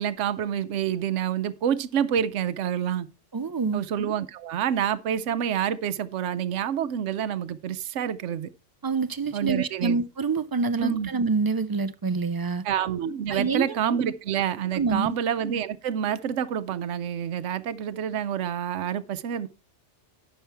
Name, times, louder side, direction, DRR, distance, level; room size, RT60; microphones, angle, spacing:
voice 1, 0.0-3.1 3.7-8.5 9.3-10.0 10.8-11.1 12.6-19.5, right 9 dB, 80° right, 1.0 m, -28 dB
voice 2, 3.3-3.8 8.8-12.7 13.3-14.0 14.7-15.2, right 4 dB, 40° right, 0.3 m, -27 dB
10.0 x 6.8 x 4.6 m
omnidirectional pair, 1.2 m